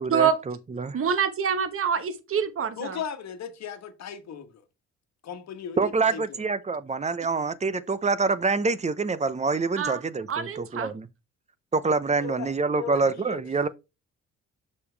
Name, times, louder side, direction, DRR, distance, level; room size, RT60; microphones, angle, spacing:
voice 1, 0.0-1.0 5.8-11.1 11.7-13.7, right 4 dB, 25° right, 0.7 m, -26 dB
voice 2, 0.9-3.0 9.8-10.0 10.3-10.9, right 7 dB, 45° right, 1.2 m, -26 dB
voice 3, 2.8-4.6 5.2-6.4 12.2-13.4, left 7 dB, 60° left, 1.3 m, -37 dB
6.8 x 5.3 x 3.3 m
cardioid pair, 90°, 30 cm